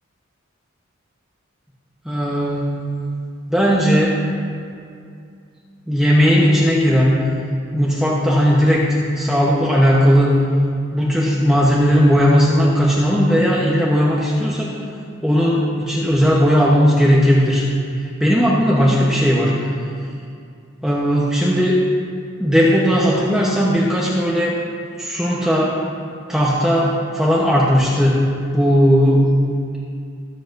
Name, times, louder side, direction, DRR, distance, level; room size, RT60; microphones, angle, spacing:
voice 1, 2.1-2.7 3.5-4.2 5.9-7.2 7.7-10.3 10.9-14.8 15.2-17.7 18.2-19.5 20.8-21.8 22.4-24.5 25.0-25.7 26.3-28.2 28.5-29.2, equal, 5° right, -6 dB, 0.9 m, -16 dB
21.5 x 7.7 x 2.6 m, 2.4 s
head